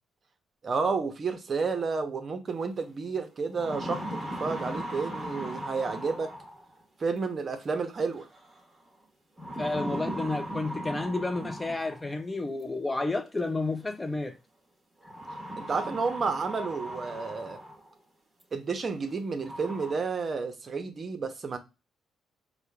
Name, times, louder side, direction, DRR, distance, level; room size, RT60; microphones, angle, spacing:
voice 1, 0.6-6.3 7.0-8.3 15.6-17.6 18.5-21.6, right 4 dB, 40° right, 0.7 m, -31 dB
sound 1, 2.8-2.9 3.4-6.8 8.2-8.6 9.4-12.2 13.4-13.5 15.0-17.9 18.4-18.5 19.0-19.1 19.4-19.9, equal, 15° right, 1.4 m, -38 dB
voice 2, 9.6-14.4, left 2 dB, 20° left, 0.3 m, -31 dB
4.9 x 2.1 x 2.3 m
cardioid pair, 90°, 0 cm